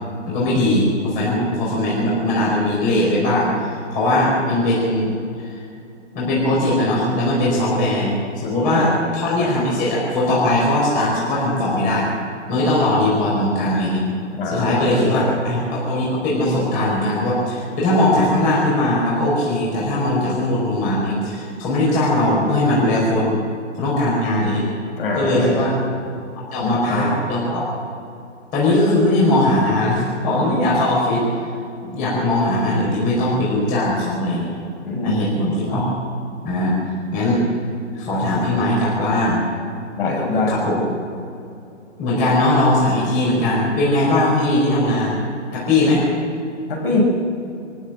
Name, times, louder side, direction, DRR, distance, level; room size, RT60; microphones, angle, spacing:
voice 1, 0.3-3.5 3.9-5.6 6.1-12.1 12.5-14.0 14.5-23.3 23.8-24.6 25.1-25.7 26.5-27.6 28.5-31.2 31.8-34.5 35.0-35.9 36.4-36.8 37.1-37.4 37.9-39.4 40.5-40.8 42.0-45.2 45.5-46.0, left 1 dB, 20° left, -5 dB, 5.4 m, -19 dB
voice 2, 14.3-15.4 25.0-25.7 26.6-27.1 34.8-35.2 40.0-40.6 45.5-45.7 46.7-47.0, left 2 dB, 45° left, -1 dB, 7.2 m, -23 dB
23.5 x 14.5 x 7.7 m, 2.6 s
hypercardioid pair, 150°, 37 cm